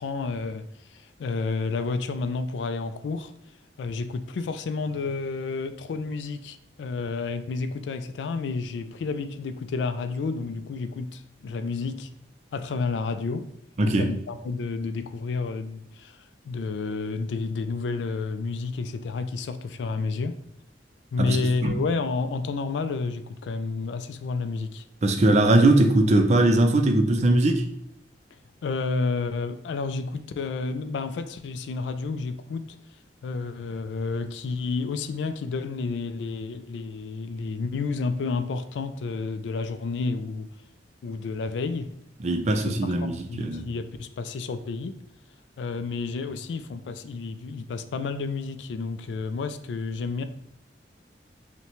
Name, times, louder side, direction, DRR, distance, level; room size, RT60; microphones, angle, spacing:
voice 1, 0.0-3.3 3.8-12.1 12.5-13.5 13.9-20.4 21.1-24.8 28.6-32.8 33.2-40.5 41.0-41.9 42.5-45.0 45.6-50.2, left 4 dB, 90° left, 0.3 m, -30 dB
voice 2, 13.8-14.1 21.2-21.7 25.0-27.6 42.2-43.7, right 2 dB, 40° right, 0.4 m, -20 dB
5.6 x 2.2 x 3.0 m
head